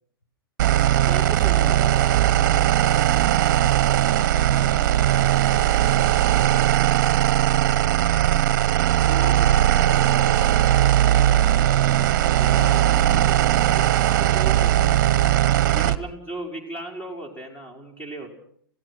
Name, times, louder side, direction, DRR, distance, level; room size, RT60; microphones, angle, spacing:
sound 1, 0.6-16.0, right 12 dB, 50° right, 1.1 m, -19 dB
voice 1, 1.0-2.2 9.1-10.1 12.3-14.9 15.7-18.3, right 1 dB, 15° left, 4 dB, 4.9 m, -37 dB
voice 2, 4.9-5.6 7.4-8.4 8.9-11.1, equal, 80° left, 5 dB, 5.7 m, -43 dB
29.0 x 17.0 x 6.1 m, 0.64 s
figure-of-eight pair, 110°, 12 cm